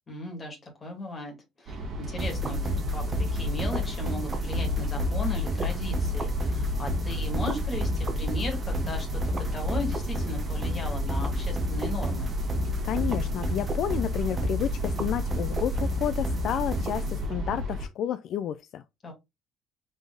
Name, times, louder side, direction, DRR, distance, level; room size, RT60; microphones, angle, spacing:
voice 1, 0.1-3.0 3.3-12.3 19.0-19.1, left 2 dB, 20° left, 1.9 m, -37 dB
sound 1, 1.7-17.9, left 1 dB, 45° right, 1.5 m, -33 dB
sound 2, 2.2-17.6, equal, 20° right, 0.8 m, -31 dB
voice 2, 12.8-18.8, left 10 dB, 55° left, 0.3 m, -31 dB
4.1 x 3.3 x 3.8 m
cardioid pair, 165°, 0 cm